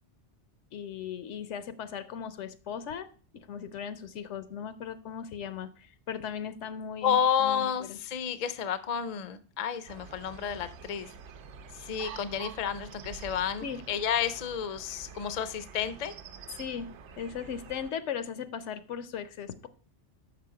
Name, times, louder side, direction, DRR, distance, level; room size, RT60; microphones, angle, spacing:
voice 1, 0.7-3.1 3.3-8.0 13.6-13.8 16.5-19.7, left 7 dB, 80° left, 1.0 m, -38 dB
voice 2, 7.0-11.1 11.7-16.1, left 8 dB, 50° left, 0.5 m, -31 dB
sound 1, 9.9-17.9, right 6 dB, 75° right, 0.9 m, -47 dB
6.1 x 5.9 x 4.7 m
omnidirectional pair, 1.2 m